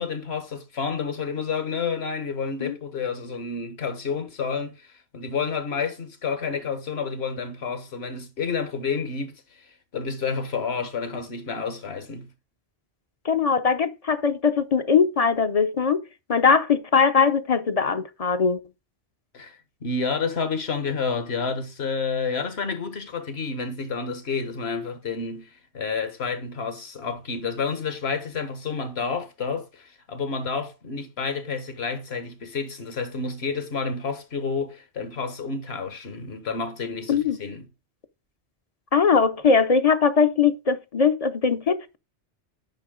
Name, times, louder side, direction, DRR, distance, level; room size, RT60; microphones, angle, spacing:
voice 1, 0.0-12.3 19.3-37.7, left 5 dB, 65° left, 1.7 m, -30 dB
voice 2, 13.2-16.0 16.3-18.6 37.1-37.4 38.9-42.0, left 5 dB, 40° left, 0.7 m, -21 dB
9.8 x 5.7 x 3.8 m
omnidirectional pair, 1.1 m